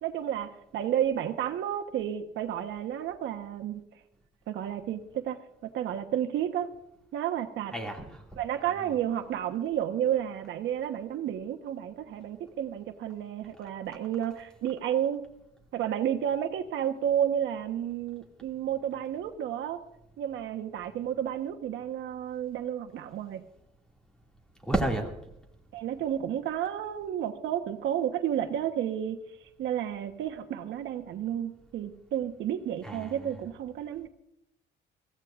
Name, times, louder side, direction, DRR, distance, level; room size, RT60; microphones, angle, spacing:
voice 1, 0.0-3.8 4.5-5.4 5.7-6.7 7.1-7.7 8.4-15.3 15.7-19.8 20.2-23.4 25.7-29.2 29.6-34.1, right 10 dB, 75° right, 6 dB, 1.2 m, -31 dB
voice 2, 7.7-8.2 8.7-9.0 24.6-25.1 32.8-33.4, right 1 dB, 5° left, 1 dB, 2.3 m, -32 dB
22.5 x 15.5 x 2.5 m, 0.82 s
cardioid pair, 135°, 19 cm